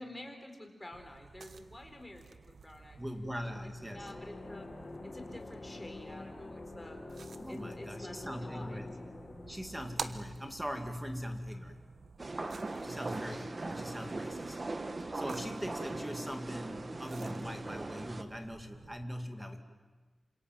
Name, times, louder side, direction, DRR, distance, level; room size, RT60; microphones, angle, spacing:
voice 1, 0.0-3.0 3.6-4.7 5.0-7.0 7.5-8.8, left 1 dB, 10° left, 3 dB, 4.0 m, -49 dB
sound 1, 0.9-19.0, right 5 dB, 70° right, 1.2 m, -51 dB
voice 2, 3.0-4.1 7.4-8.9 9.4-11.8 12.2-12.4 12.8-14.6 15.0-19.6, equal, 10° right, 5 dB, 2.2 m, -41 dB
sound 2, 3.8-11.4, left 2 dB, 35° left, 1.7 m, -47 dB
sound 3, 12.2-18.2, right 2 dB, 35° right, 1.4 m, -40 dB
28.0 x 26.5 x 7.7 m, 1.3 s
wide cardioid pair, 135°, 0 cm